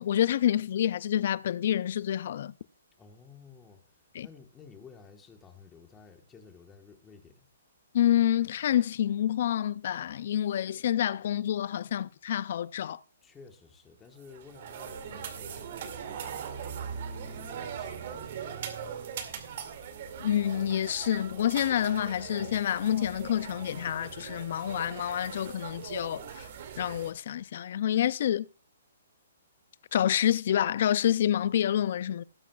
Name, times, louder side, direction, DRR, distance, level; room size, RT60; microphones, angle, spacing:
voice 1, 0.0-2.5 4.1-4.3 7.9-13.0 20.2-26.5 26.8-28.5 29.9-32.2, left 11 dB, 55° left, 0.4 m, -28 dB
voice 2, 3.0-7.5 13.2-19.1, left 5 dB, 10° left, 1.3 m, -54 dB
sound 1, 14.2-27.1, right 7 dB, 50° right, 2.3 m, -40 dB
19.0 x 8.4 x 2.4 m
hypercardioid pair, 155°, 0 cm